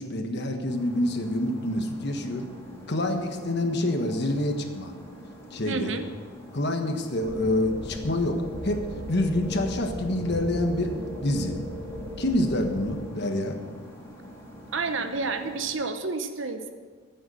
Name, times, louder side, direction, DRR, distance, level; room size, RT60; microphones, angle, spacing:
voice 1, 0.0-2.5 2.9-4.9 5.5-5.9 6.5-11.6 12.2-13.6, left 1 dB, 50° left, 5 dB, 1.3 m, -27 dB
sound 1, 0.7-15.7, equal, 15° left, 2.5 m, -46 dB
voice 2, 5.6-6.1 14.7-16.7, right 4 dB, 60° right, 8 dB, 1.0 m, -30 dB
sound 2, 7.2-13.0, equal, 35° right, 4.5 m, -37 dB
14.0 x 8.1 x 6.4 m, 1.6 s
head